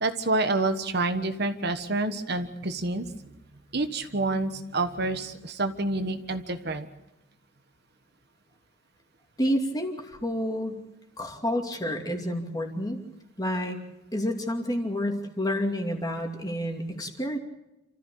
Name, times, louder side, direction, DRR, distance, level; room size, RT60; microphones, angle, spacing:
voice 1, 0.0-3.1 3.7-6.9, right 2 dB, 50° right, 8 dB, 1.4 m, -28 dB
voice 2, 9.4-10.8 11.2-13.0 13.4-13.8 14.1-17.4, equal, 20° left, 3 dB, 2.6 m, -29 dB
28.0 x 14.5 x 8.6 m, 0.95 s
head